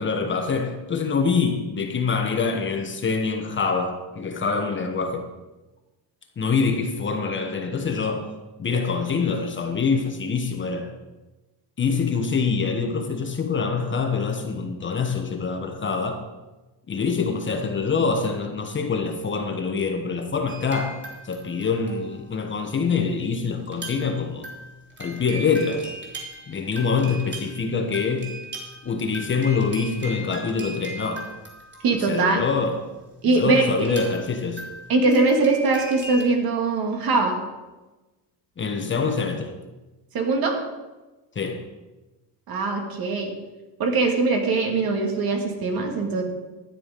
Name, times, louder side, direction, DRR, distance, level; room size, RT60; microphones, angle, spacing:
voice 1, 0.0-5.3 6.4-8.3 8.6-10.9 11.8-16.3 16.9-21.0 21.2-24.5 25.0-25.9 26.5-28.4 28.8-31.3 32.1-32.8 33.2-34.6 38.6-39.5 41.3-41.7, left 5 dB, 25° left, 1.3 m, -25 dB
sound 1, 20.5-21.4 21.6-22.4 23.6-24.2 24.4-32.4 33.8-36.2, right 2 dB, 25° right, 3.2 m, -39 dB
voice 2, 31.8-32.4 33.2-34.0 34.9-37.4 40.1-40.5 42.5-43.3 43.8-46.2, right 3 dB, 55° right, 2.5 m, -22 dB
13.0 x 9.5 x 5.3 m
cardioid pair, 140°, 44 cm